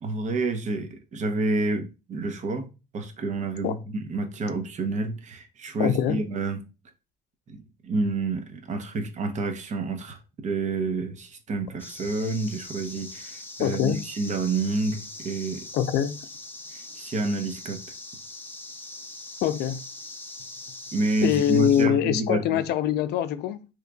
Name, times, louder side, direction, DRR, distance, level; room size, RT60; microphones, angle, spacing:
voice 1, 0.0-2.7 2.9-6.6 7.5-10.2 10.4-15.7 17.0-17.8 20.9-22.6, right 3 dB, 45° right, 0.8 m, -29 dB
voice 2, 5.8-6.2 13.6-14.0 15.7-16.2 19.4-19.8 21.2-23.7, left 10 dB, 75° left, 0.4 m, -24 dB
sound 1, 11.8-21.9, left 2 dB, 10° left, 0.5 m, -41 dB
3.7 x 3.0 x 2.3 m
cardioid pair, 110°, 17 cm